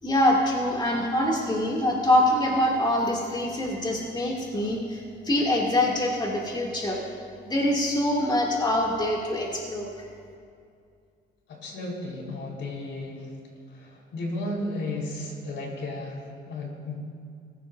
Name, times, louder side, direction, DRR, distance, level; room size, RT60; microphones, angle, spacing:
voice 1, 0.0-7.0 7.4-9.9, left 1 dB, 20° left, -2 dB, 2.6 m, -24 dB
voice 2, 11.5-13.3 13.7-17.0, left 2 dB, 70° left, -1 dB, 4.2 m, -34 dB
23.5 x 15.5 x 2.7 m, 2.3 s
cardioid pair, 90°, 20 cm